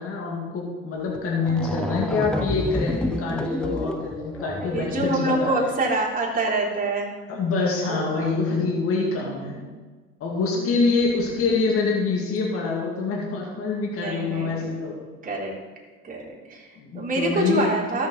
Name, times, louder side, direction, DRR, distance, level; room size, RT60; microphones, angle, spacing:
voice 1, 0.0-5.7 7.3-9.6 10.2-15.0 16.8-17.7, left 4 dB, 50° left, -2 dB, 2.2 m, -25 dB
sound 1, 1.1-1.2 1.5-5.2, left 1 dB, 5° left, 0.4 m, -30 dB
voice 2, 1.5-2.2 4.6-7.2 7.9-8.4 9.0-9.8 10.6-11.2 11.5-11.6 13.9-14.7 15.2-15.5 16.0-18.1, right 2 dB, 30° right, -4 dB, 3.6 m, -27 dB
13.5 x 7.3 x 4.0 m, 1.4 s
supercardioid pair, 80°, 29 cm